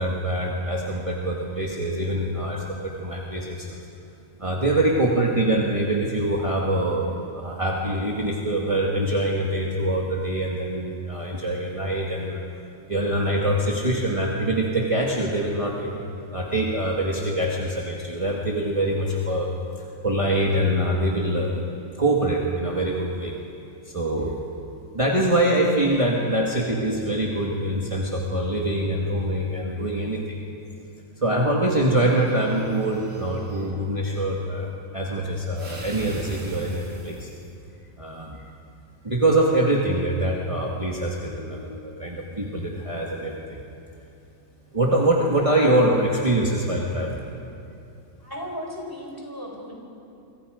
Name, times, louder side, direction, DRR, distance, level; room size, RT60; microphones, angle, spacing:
voice 1, 0.0-3.8 4.4-12.4 12.9-19.5 20.0-21.5 22.0-23.4 23.9-24.4 24.9-30.4 31.2-37.3 38.0-38.5 39.0-43.6 44.7-47.2, right 1 dB, 25° right, -2 dB, 1.9 m, -24 dB
sound 1, 32.0-33.7 35.6-37.5, right 1 dB, 80° right, 3.1 m, -39 dB
voice 2, 48.2-49.7, equal, 15° left, -1 dB, 4.7 m, -35 dB
27.5 x 25.0 x 5.1 m, 2.7 s
omnidirectional pair, 1.4 m